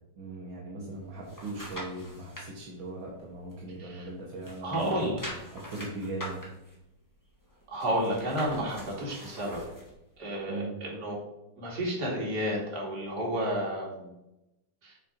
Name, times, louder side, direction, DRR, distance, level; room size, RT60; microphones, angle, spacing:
voice 1, 0.2-5.1 5.5-6.4 10.5-10.7, right 2 dB, 55° right, -3 dB, 1.5 m, -39 dB
voice 2, 0.7-1.0 3.8-4.1 4.6-5.2 7.7-9.6 10.2-11.1 11.6-14.1 14.8-14.9, equal, 35° right, -3 dB, 2.5 m, -31 dB
sound 1, 0.9-2.5 3.0-4.1 4.4-9.9 10.4-10.5, equal, 10° left, 1.1 m, -44 dB
6.4 x 5.8 x 5.2 m, 0.91 s
omnidirectional pair, 3.3 m